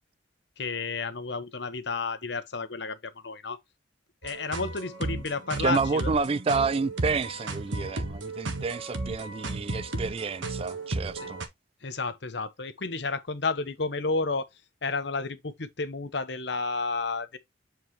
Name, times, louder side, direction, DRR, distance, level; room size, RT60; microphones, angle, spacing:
voice 1, 0.6-3.6 4.2-6.1 11.2-11.3 11.8-14.5 14.8-17.4, left 3 dB, 65° left, 1.0 m, -31 dB
sound 1, 4.2-11.5, right 2 dB, 90° right, 1.4 m, -34 dB
voice 2, 5.6-11.4, right 4 dB, 30° right, 0.3 m, -29 dB
7.7 x 4.3 x 3.1 m
head